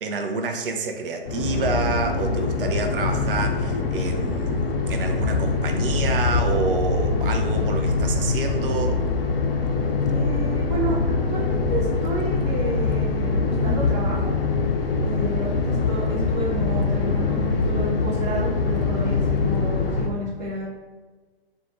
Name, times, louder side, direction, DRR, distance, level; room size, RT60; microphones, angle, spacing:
voice 1, 0.0-9.0, right 4 dB, 65° right, 4 dB, 0.5 m, -28 dB
sound 1, 1.2-20.1, left 4 dB, 70° left, 0.5 m, -23 dB
voice 2, 10.1-11.0 11.3-14.3 15.0-20.6, right 1 dB, 40° right, -9 dB, 0.9 m, -30 dB
2.5 x 2.2 x 2.9 m, 1.3 s
figure-of-eight pair, 120°, 30 cm